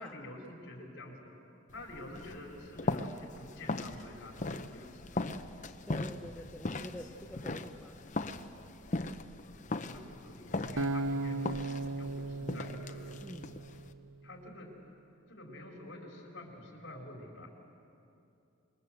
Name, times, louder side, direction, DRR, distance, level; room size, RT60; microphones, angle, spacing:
voice 1, 0.0-1.3 1.7-5.5 9.4-11.6 11.9-13.2 14.2-14.7 15.3-17.5, left 1 dB, 55° left, 0 dB, 4.7 m, -48 dB
sound 1, 1.7-13.9, left 2 dB, 35° left, 0.8 m, -39 dB
voice 2, 5.9-8.0 13.2-13.5, left 1 dB, 5° left, 1 dB, 0.9 m, -46 dB
Acoustic guitar, 10.8-14.0, right 2 dB, 75° right, 0.9 m, -36 dB
26.5 x 22.0 x 7.8 m, 2.7 s
head